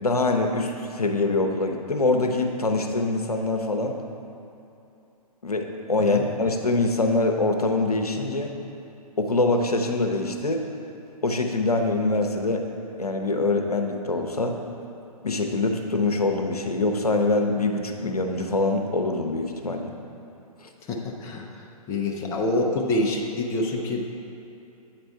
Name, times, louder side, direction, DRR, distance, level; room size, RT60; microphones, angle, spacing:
voice 1, 0.0-4.0 5.4-8.5 9.2-10.6 11.2-12.6 13.0-14.6 15.2-19.9 20.6-20.7, left 2 dB, 80° left, 4 dB, 0.7 m, -24 dB
voice 2, 20.9-21.6 21.9-24.0, left 2 dB, 15° left, 0 dB, 0.5 m, -26 dB
8.9 x 4.2 x 4.5 m, 2.8 s
figure-of-eight pair, 120°, 19 cm